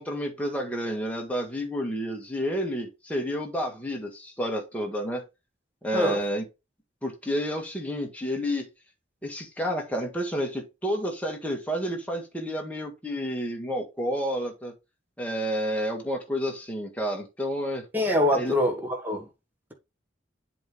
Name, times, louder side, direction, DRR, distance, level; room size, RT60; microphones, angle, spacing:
voice 1, 0.0-5.2 5.8-6.4 7.0-8.7 9.2-14.7 15.2-17.8 18.3-18.5, equal, 10° left, 1.8 m, -30 dB
voice 2, 17.9-19.3, equal, 10° right, 1.5 m, -24 dB
7.8 x 3.3 x 5.3 m
head